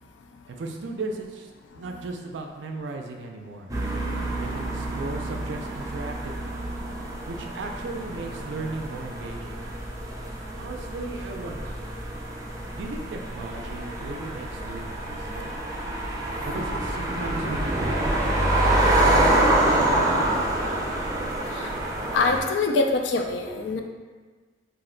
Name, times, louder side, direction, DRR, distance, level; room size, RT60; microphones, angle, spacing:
voice 1, 0.5-3.7 4.3-6.6 7.3-9.6 10.5-11.8 12.7-15.5 16.4-20.7, right 3 dB, 85° right, 3 dB, 0.4 m, -37 dB
sound 1, 3.7-22.4, right 1 dB, 20° right, 0.4 m, -26 dB
voice 2, 22.1-23.8, left 3 dB, 70° left, 4 dB, 0.3 m, -24 dB
2.6 x 2.1 x 3.7 m, 1.4 s
head